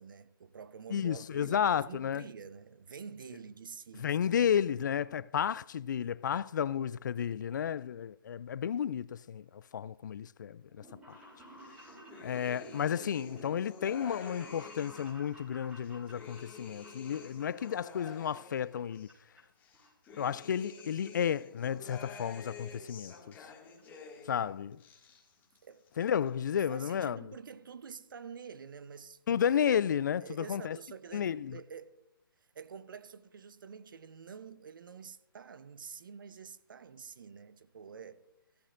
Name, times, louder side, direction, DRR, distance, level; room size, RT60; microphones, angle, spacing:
voice 1, 0.0-4.4 4.6-4.8 6.3-6.7 25.6-25.8 26.7-29.2 30.2-31.9 32.4-38.2, right 6 dB, 60° right, 0.8 m, -48 dB
voice 2, 0.9-2.2 4.0-11.2 12.2-19.1 20.2-23.3 24.2-24.8 26.0-27.3 29.3-30.8 31.1-31.6, left 8 dB, 55° left, 0.4 m, -32 dB
sound 1, 10.7-18.4 18.7-19.4 19.7-20.8 21.1-21.2 22.1-22.2 22.4-22.5 22.7-22.8 23.1-23.4 23.8-23.9 24.1-24.2, equal, 10° right, 4.2 m, -54 dB
sound 2, 11.6-15.2 15.7-19.1 19.6-24.4 24.7-25.6 25.9-26.6, left 5 dB, 15° left, 2.2 m, -50 dB
15.5 x 13.0 x 2.6 m
hypercardioid pair, 150°, 12 cm